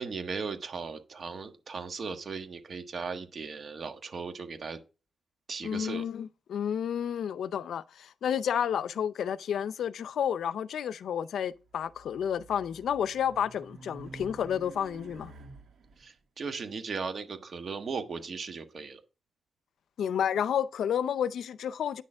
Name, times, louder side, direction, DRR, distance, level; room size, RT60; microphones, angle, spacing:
voice 1, 0.0-4.8 5.5-6.0 16.0-19.0, right 5 dB, 45° right, 1.3 m, -37 dB
voice 2, 5.6-15.3 20.0-22.0, left 8 dB, 80° left, 0.5 m, -31 dB
Race car auto racing, 11.7-16.0, right 3 dB, 80° right, 2.2 m, -49 dB
9.3 x 6.6 x 3.5 m
wide cardioid pair, 120°, 0 cm